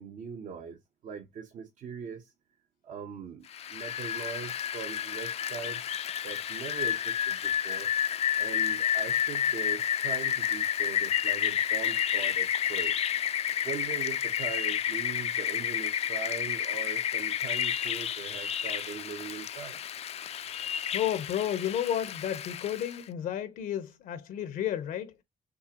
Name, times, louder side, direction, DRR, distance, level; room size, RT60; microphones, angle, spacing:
voice 1, 0.0-2.3 2.8-5.8 6.2-8.1 8.4-12.9 13.6-19.8, right 6 dB, 65° right, 0.9 m, -41 dB
Rain, 3.5-23.0, left 9 dB, 50° left, 0.4 m, -30 dB
voice 2, 20.9-25.1, left 10 dB, 85° left, 0.9 m, -32 dB
6.4 x 2.5 x 2.9 m
cardioid pair, 100°, 14 cm